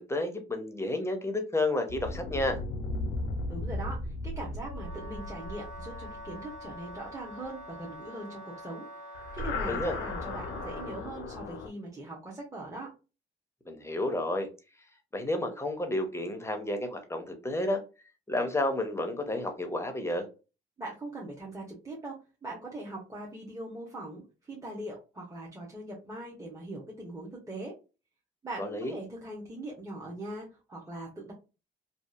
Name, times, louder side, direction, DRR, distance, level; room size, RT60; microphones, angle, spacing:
voice 1, 0.0-2.6 9.7-9.9 13.7-14.5 15.1-17.8 18.3-20.3 28.6-28.9, left 1 dB, 15° left, 5 dB, 0.7 m, -31 dB
sound 1, 1.9-7.5 9.1-11.7, left 2 dB, 70° left, 0.6 m, -36 dB
voice 2, 3.5-8.9 9.3-12.9 20.8-27.7 28.4-31.3, right 2 dB, 15° right, -4 dB, 0.8 m, -41 dB
Wind instrument woodwind instrument, 4.6-11.1, equal, 40° right, 1.1 m, -45 dB
2.7 x 2.4 x 2.3 m, 0.31 s
cardioid pair, 90°, 20 cm